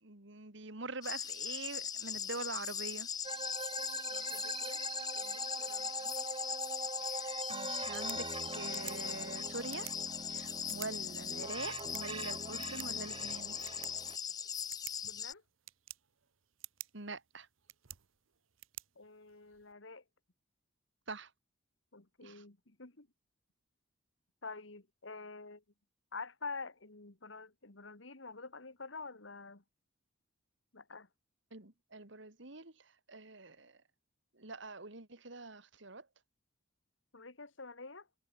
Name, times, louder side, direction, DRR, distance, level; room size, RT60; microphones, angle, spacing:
voice 1, 0.0-3.1 5.8-6.1 7.0-9.9 10.3-13.6 16.9-17.5 21.1-21.3 22.2-22.4 31.5-33.8 34.3-36.1, right 3 dB, 65° right, 2.5 m, -45 dB
sound 1, 1.0-15.3, left 7 dB, 20° left, 0.3 m, -40 dB
sound 2, 3.2-14.2, right 3 dB, 25° right, 2.0 m, -43 dB
voice 2, 4.1-4.8 5.1-5.9 15.0-15.4 19.0-20.0 21.9-23.1 24.4-25.6 26.1-29.6 30.7-31.1 37.1-38.1, left 4 dB, 65° left, 2.1 m, -48 dB
sound 3, 7.7-19.7, right 16 dB, 80° right, 1.0 m, -53 dB
head